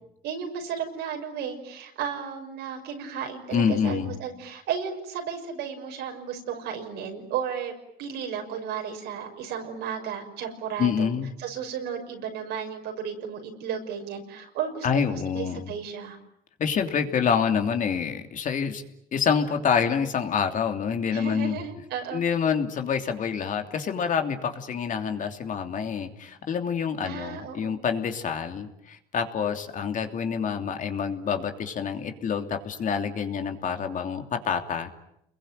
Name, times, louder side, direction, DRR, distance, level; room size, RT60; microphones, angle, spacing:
voice 1, 0.2-7.7 8.0-11.1 11.4-16.2 21.1-22.2 27.0-27.8, right 7 dB, 85° right, 3 dB, 6.2 m, -34 dB
voice 2, 3.5-4.1 10.8-11.3 14.8-15.7 16.6-18.8 19.1-21.6 22.1-34.9, left 7 dB, 50° left, 6 dB, 3.0 m, -27 dB
29.5 x 22.0 x 9.2 m, 0.77 s
cardioid pair, 110°, 17 cm